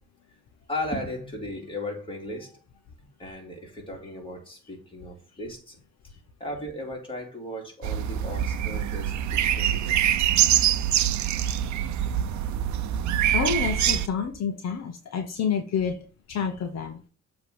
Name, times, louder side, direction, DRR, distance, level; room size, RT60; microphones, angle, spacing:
voice 1, 0.7-2.6 3.2-5.8 6.0-6.1 6.4-10.1, left 1 dB, 15° left, 2.7 m, -36 dB
sound 1, 7.8-14.1, right 10 dB, 70° right, 0.6 m, -24 dB
voice 2, 13.3-17.1, left 7 dB, 60° left, 1.0 m, -29 dB
7.4 x 3.1 x 5.0 m
cardioid pair, 90°, 30 cm